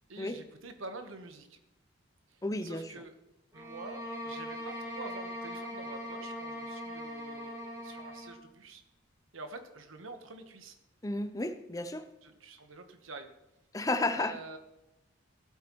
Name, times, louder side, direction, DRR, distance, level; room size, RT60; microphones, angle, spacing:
voice 1, 0.1-1.6 2.3-3.1 3.5-8.8 9.3-10.7 12.2-13.3 14.1-14.6, right 3 dB, 80° right, 7 dB, 1.1 m, -47 dB
voice 2, 2.4-2.9 11.0-12.1 13.7-14.4, left 2 dB, 15° left, 10 dB, 0.5 m, -32 dB
sound 1, 3.5-8.4, equal, 15° right, 1.9 m, -41 dB
15.0 x 8.3 x 3.1 m, 0.91 s
head